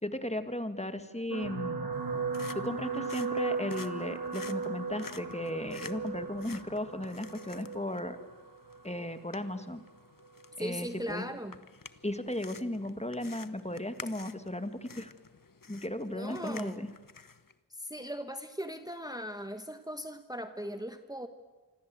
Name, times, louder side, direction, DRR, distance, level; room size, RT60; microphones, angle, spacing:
voice 1, 0.0-1.9 2.5-8.2 8.8-9.8 10.6-11.2 12.0-15.1 15.7-16.9, left 1 dB, 15° left, 9 dB, 1.9 m, -36 dB
sound 1, 1.3-9.8 10.5-10.8 11.0-11.1, right 5 dB, 80° right, 1.6 m, -37 dB
sound 2, 1.9-17.5, left 5 dB, 60° left, 1.1 m, -51 dB
voice 2, 10.6-11.6 16.1-16.8 17.8-21.3, equal, 10° right, 7 dB, 1.3 m, -39 dB
27.0 x 25.0 x 7.8 m, 1.2 s
wide cardioid pair, 55°, 38 cm